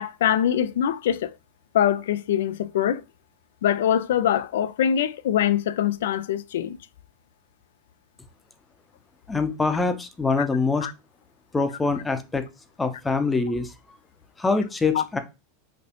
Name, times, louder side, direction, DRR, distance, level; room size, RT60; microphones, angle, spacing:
voice 1, 0.0-1.3 1.7-3.0 3.6-6.8 10.4-10.5 10.8-10.9 14.9-15.0, left 10 dB, 75° left, 0.3 m, -23 dB
voice 2, 9.3-10.9 11.5-12.4 12.8-13.7 14.4-15.2, left 4 dB, 15° left, 0.6 m, -24 dB
4.2 x 2.4 x 2.8 m
hypercardioid pair, 105°, 0 cm